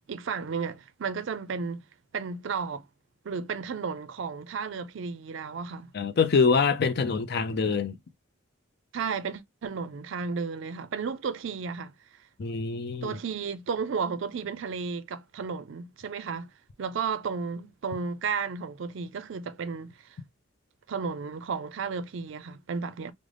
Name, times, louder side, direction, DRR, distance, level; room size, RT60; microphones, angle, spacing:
voice 1, 0.1-1.8 2.1-2.8 3.2-5.9 8.9-11.9 13.0-16.5 16.8-20.2 20.9-23.1, right 5 dB, 65° right, 0.4 m, -33 dB
voice 2, 5.9-8.0 12.4-13.2, left 5 dB, 55° left, 0.5 m, -25 dB
3.3 x 2.0 x 3.6 m
head